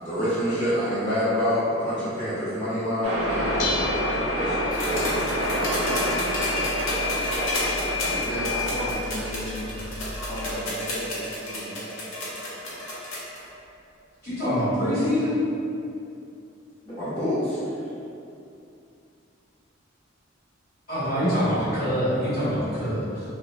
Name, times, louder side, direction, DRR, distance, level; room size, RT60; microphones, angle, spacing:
voice 1, 0.0-6.1 16.8-17.6, equal, 15° left, -21 dB, 1.1 m, -28 dB
sound 1, 3.0-8.9, left 1 dB, 85° right, 0.5 m, -27 dB
Dishes pots and pans, 3.1-10.5, left 1 dB, 60° left, 0.3 m, -36 dB
sound 2, 4.7-13.4 14.6-14.7, left 1 dB, 85° left, 0.7 m, -31 dB
voice 2, 8.1-9.9 10.2-12.0, equal, 30° right, -16 dB, 0.6 m, -35 dB
voice 3, 14.2-15.3 20.9-23.2, equal, 45° left, -17 dB, 1.2 m, -25 dB
2.5 x 2.1 x 2.9 m, 2.6 s
head